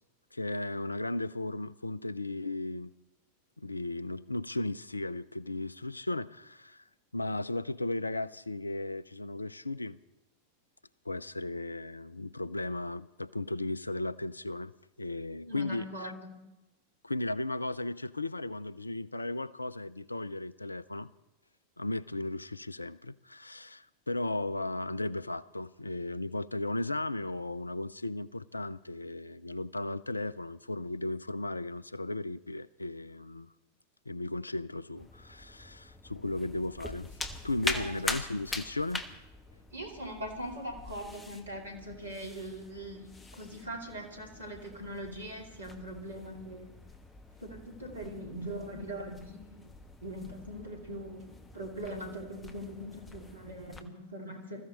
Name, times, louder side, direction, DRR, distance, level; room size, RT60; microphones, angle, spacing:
voice 1, 0.3-2.9 3.6-6.8 7.1-10.0 11.1-14.7 15.0-16.1 17.0-21.1 21.8-33.5 34.1-37.1 37.4-39.0 42.2-42.3, left 2 dB, 80° left, 0.5 m, -35 dB
voice 2, 15.5-16.3 37.7-37.9 39.7-46.7 47.4-49.7 50.0-54.6, right 1 dB, 75° right, 2.7 m, -41 dB
sound 1, 35.0-53.8, left 3 dB, 15° left, 1.3 m, -43 dB
21.0 x 14.0 x 4.2 m
figure-of-eight pair, 90°, 0 cm